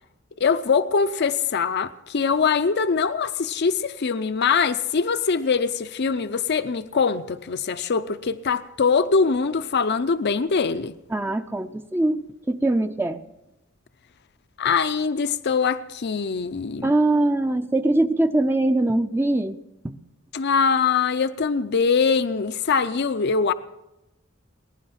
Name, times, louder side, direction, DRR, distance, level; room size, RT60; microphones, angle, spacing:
voice 1, 0.4-10.9 14.6-16.9 20.3-23.5, left 5 dB, 55° left, 12 dB, 0.5 m, -23 dB
voice 2, 11.1-13.2 16.8-19.6 19.8-20.0, right 2 dB, 10° right, 8 dB, 0.5 m, -22 dB
20.5 x 10.5 x 5.9 m, 0.95 s
head